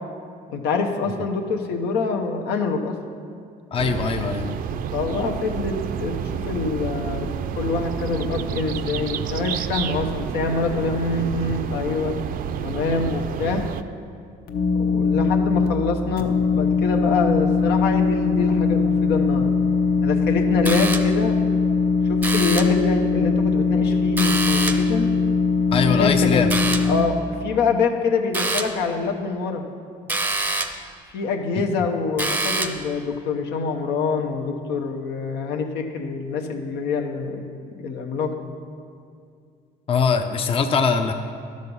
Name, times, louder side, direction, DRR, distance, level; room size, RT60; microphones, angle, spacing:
voice 1, 0.5-3.0 4.9-7.3 7.6-12.1 12.6-13.7 14.7-19.5 20.0-21.4 22.1-25.1 25.9-26.4 26.9-29.6 31.1-37.6 37.8-38.5, left 4 dB, 85° left, 3 dB, 1.0 m, -25 dB
voice 2, 3.7-4.6 25.7-26.5 39.9-41.1, left 5 dB, 35° left, 6 dB, 0.5 m, -21 dB
sound 1, 3.8-13.8, right 8 dB, 60° right, 0.5 m, -29 dB
sound 2, 14.5-15.7 16.2-27.0, left 5 dB, 60° left, 0.9 m, -21 dB
sound 3, 20.7-21.3 22.2-22.9 24.2-25.0 26.5-27.0 28.3-28.9 30.1-30.9 32.2-32.9, right 2 dB, 10° right, 0.6 m, -26 dB
12.0 x 6.5 x 5.4 m, 2.3 s
cardioid pair, 110°, 17 cm